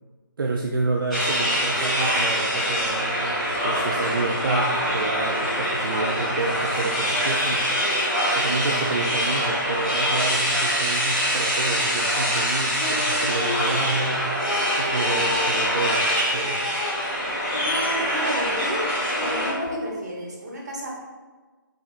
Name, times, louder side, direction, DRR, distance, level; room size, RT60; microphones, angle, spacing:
voice 1, 0.4-7.7 8.3-16.0 16.3-16.6, right 3 dB, 75° right, 1 dB, 0.4 m, -29 dB
sound 1, 1.1-19.5, equal, ahead, 0.5 m, -24 dB
sound 2, 12.8-13.9 14.4-18.7 19.1-19.9, left 3 dB, 70° left, 0.5 m, -33 dB
voice 2, 18.1-18.9 19.2-20.9, equal, 50° right, -3 dB, 1.1 m, -31 dB
3.6 x 3.3 x 2.4 m, 1.3 s
figure-of-eight pair, 160°, 12 cm